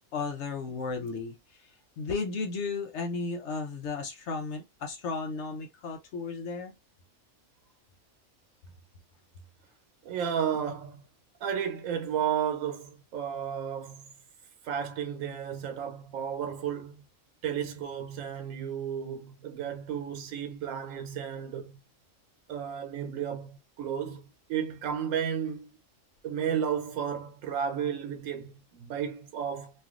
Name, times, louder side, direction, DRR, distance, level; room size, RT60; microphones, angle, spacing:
voice 1, 0.1-6.7, left 4 dB, 65° left, 0.9 m, -34 dB
voice 2, 10.0-11.0 11.4-14.0 14.6-17.0 17.4-21.8 22.5-25.7 26.2-29.7, right 8 dB, 85° right, 1.0 m, -33 dB
3.1 x 2.5 x 2.4 m
omnidirectional pair, 1.3 m